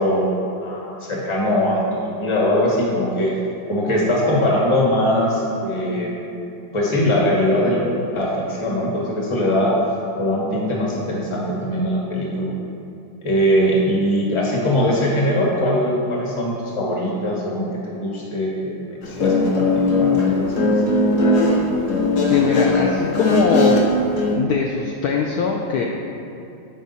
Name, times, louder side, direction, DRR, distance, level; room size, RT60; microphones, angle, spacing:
voice 1, 0.0-3.3 3.7-6.2 6.7-7.8 8.1-9.7 10.2-12.5 13.2-20.8, equal, 20° left, -3 dB, 0.9 m, -21 dB
Guitar, 19.0-24.3, left 2 dB, 55° left, 0.9 m, -19 dB
voice 2, 22.3-23.8 24.3-25.8, left 5 dB, 80° left, 1 dB, 0.8 m, -21 dB
9.3 x 4.8 x 4.1 m, 2.7 s
omnidirectional pair, 2.2 m